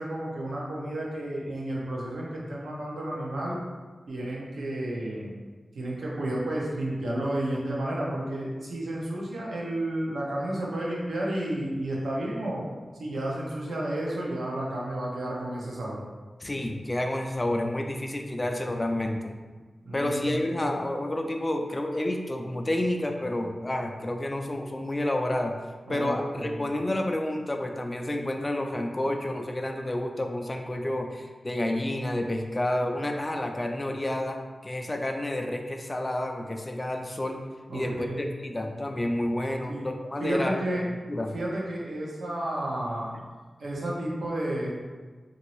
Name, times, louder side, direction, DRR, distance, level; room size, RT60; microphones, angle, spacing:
voice 1, 0.0-3.6 4.1-5.3 5.7-12.7 13.0-16.0 19.9-20.4 25.9-26.7 37.7-38.2 39.7-39.8 40.2-40.8 41.3-43.2 43.6-44.7, right 1 dB, 85° right, -4 dB, 0.7 m, -31 dB
voice 2, 16.4-19.3 19.9-25.6 25.9-37.4 37.7-40.5 41.1-41.3, left 1 dB, 25° left, 3 dB, 0.3 m, -30 dB
3.0 x 2.6 x 3.0 m, 1.4 s
wide cardioid pair, 80°, 0 cm